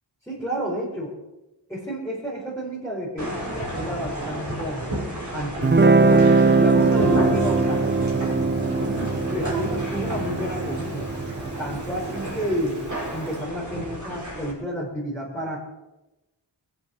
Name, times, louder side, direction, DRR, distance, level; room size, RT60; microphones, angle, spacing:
voice 1, 0.3-1.1 1.7-4.8 5.3-6.3 6.6-8.4 8.9-11.1 11.6-12.8 13.1-15.6, equal, 5° left, -7 dB, 4.8 m, -30 dB
sound 1, 3.2-14.5, right 1 dB, 40° right, 5.7 m, -33 dB
Guitar, 5.6-12.8, right 4 dB, 25° right, 0.5 m, -21 dB
sound 2, 6.9-12.8, equal, 60° right, 5.2 m, -31 dB
21.5 x 8.8 x 6.5 m, 1.0 s
wide cardioid pair, 40°, 44 cm